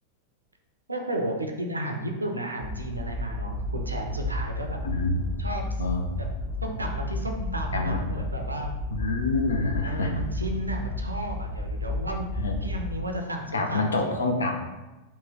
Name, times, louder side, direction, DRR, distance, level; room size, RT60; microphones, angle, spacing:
voice 1, 0.9-4.8 5.4-5.8 6.2-6.3 6.6-8.7 9.8-12.3 12.6-14.2, right 1 dB, 80° right, 3 dB, 0.5 m, -33 dB
sound 1, 2.6-13.1, left 1 dB, 35° left, 1.3 m, -32 dB
voice 2, 4.8-5.2 5.8-6.0 7.7-8.0 8.9-10.1 12.4-12.5 13.5-14.5, left 3 dB, 70° left, 3 dB, 0.5 m, -26 dB
3.0 x 2.8 x 3.6 m, 1.1 s
figure-of-eight pair, 90°, 0 cm